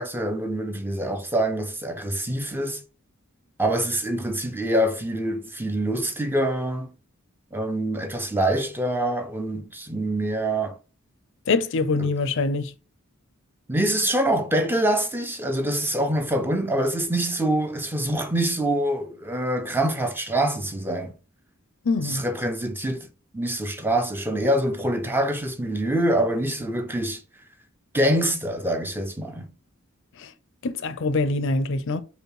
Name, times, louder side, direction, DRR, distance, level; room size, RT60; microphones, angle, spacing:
voice 1, 0.0-2.8 3.6-6.9 7.5-10.8 12.0-12.1 13.7-21.1 22.0-23.1 23.3-27.2 27.9-29.5, right 1 dB, 10° right, 0.5 m, -25 dB
voice 2, 11.5-12.7 21.8-22.3 30.2-30.3 30.6-32.0, left 3 dB, 60° left, 0.5 m, -24 dB
5.0 x 2.2 x 4.7 m
head